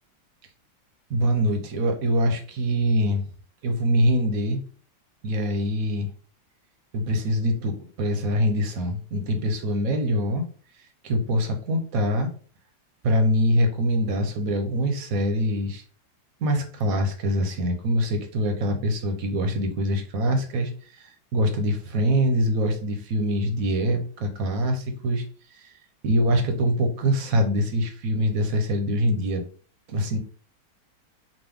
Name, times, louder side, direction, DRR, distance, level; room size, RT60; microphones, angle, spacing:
voice 1, 1.1-3.2 3.6-4.6 5.2-6.1 6.9-10.5 11.0-12.3 13.0-15.8 16.4-20.7 21.0-25.2 25.6-25.7 26.0-29.4 29.9-30.2, equal, 60° right, 5 dB, 1.2 m, -24 dB
5.2 x 2.6 x 3.5 m, 0.41 s
omnidirectional pair, 1.9 m